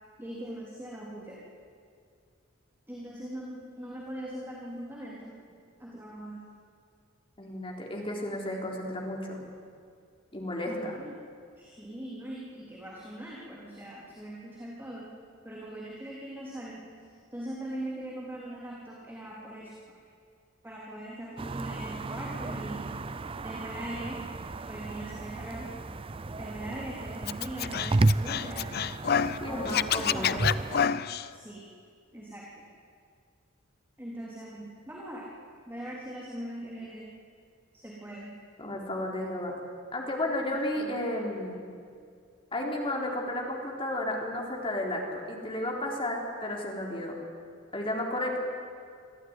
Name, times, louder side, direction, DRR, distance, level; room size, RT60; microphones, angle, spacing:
voice 1, 0.2-1.4 2.9-5.3 5.8-6.5 10.6-11.1 11.6-15.1 15.4-16.9 17.3-19.7 20.6-23.0 23.4-24.3 24.7-25.7 26.4-28.7 29.5-30.8 31.3-31.7 32.1-32.7 34.0-35.3 35.7-37.1 37.7-38.3 40.8-40.9, right 1 dB, 10° right, -5 dB, 3.4 m, -41 dB
voice 2, 7.4-9.4 10.3-11.0 29.4-30.4 38.6-39.5 39.9-41.7 42.5-47.2 47.7-48.4, left 1 dB, 25° left, 0 dB, 3.8 m, -33 dB
sound 1, 21.4-30.9, right 2 dB, 25° right, 0.5 m, -33 dB
Scratching (performance technique), 27.3-29.4 29.7-31.3, left 8 dB, 50° left, 0.5 m, -28 dB
24.5 x 15.0 x 9.7 m, 2.2 s
head